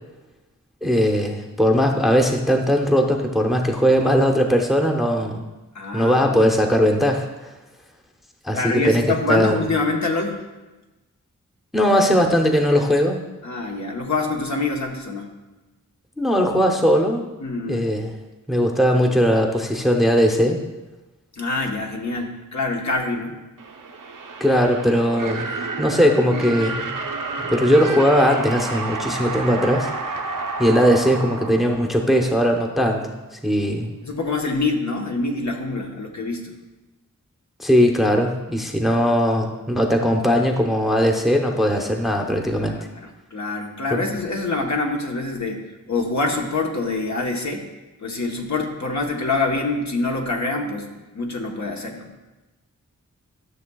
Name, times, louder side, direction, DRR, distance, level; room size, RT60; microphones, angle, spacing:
voice 1, 0.8-5.4 5.9-7.3 8.4-9.0 9.3-9.6 11.7-13.2 16.2-17.2 17.7-18.1 18.5-20.6 24.4-25.5 25.8-26.9 27.4-30.2 30.6-33.1 33.4-33.9 37.6-42.8 43.9-44.0, equal, ahead, 2 dB, 0.7 m, -19 dB
voice 2, 5.7-6.6 8.5-10.4 13.4-15.3 17.4-17.9 21.4-23.3 34.0-36.5 42.6-47.7 48.0-52.1, left 3 dB, 60° left, 1 dB, 1.1 m, -25 dB
sound 1, 23.6-32.4, right 3 dB, 80° right, 0.6 m, -30 dB
12.5 x 6.7 x 2.3 m, 1.1 s
wide cardioid pair, 85°, 32 cm